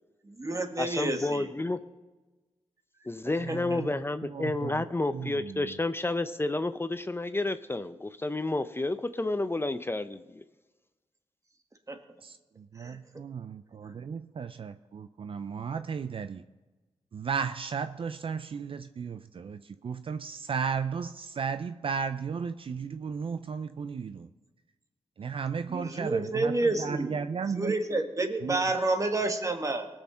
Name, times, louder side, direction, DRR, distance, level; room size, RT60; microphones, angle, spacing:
voice 1, 0.3-1.5 3.5-3.8 11.9-12.0 12.8-13.0 25.7-27.2 27.6-29.9, right 2 dB, 30° right, 5 dB, 1.8 m, -29 dB
voice 2, 0.8-1.8 3.1-10.4, left 2 dB, 20° left, 10 dB, 0.6 m, -30 dB
voice 3, 3.5-3.9 4.2-4.8 5.1-5.7 12.2-16.4 17.1-24.3 25.2-27.8 28.4-28.7, right 6 dB, 55° right, 11 dB, 0.5 m, -35 dB
18.5 x 6.5 x 5.6 m, 1.2 s
cardioid pair, 45°, 11 cm